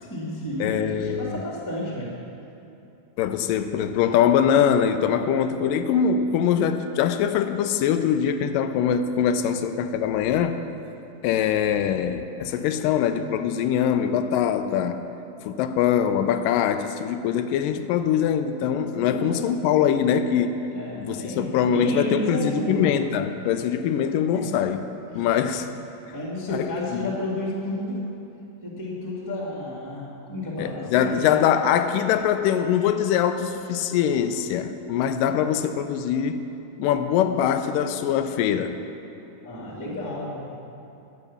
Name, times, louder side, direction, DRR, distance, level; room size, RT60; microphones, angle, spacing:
voice 1, 0.0-2.1 18.9-19.4 20.7-23.0 24.3-24.5 25.1-25.4 26.1-28.0 28.6-31.2 39.4-40.5, left 1 dB, 10° left, -4 dB, 1.2 m, -31 dB
voice 2, 0.6-1.4 3.2-10.6 11.2-15.1 15.4-20.6 20.9-24.8 25.2-25.7 26.5-27.1 30.6-36.4 36.8-38.8, left 8 dB, 85° left, 9 dB, 2.2 m, -23 dB
10.5 x 8.2 x 7.1 m, 2.8 s
omnidirectional pair, 3.8 m